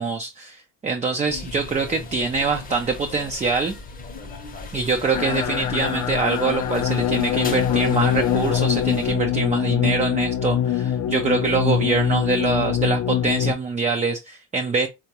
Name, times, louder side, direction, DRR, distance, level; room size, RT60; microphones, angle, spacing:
voice 1, 0.0-3.8 4.7-14.9, right 4 dB, 20° right, 0.4 m, -24 dB
sound 1, 1.3-9.1, left 3 dB, 20° left, 0.8 m, -37 dB
sound 2, 5.1-13.5, left 10 dB, 50° left, 0.5 m, -23 dB
3.7 x 2.3 x 2.8 m
supercardioid pair, 85°, 39 cm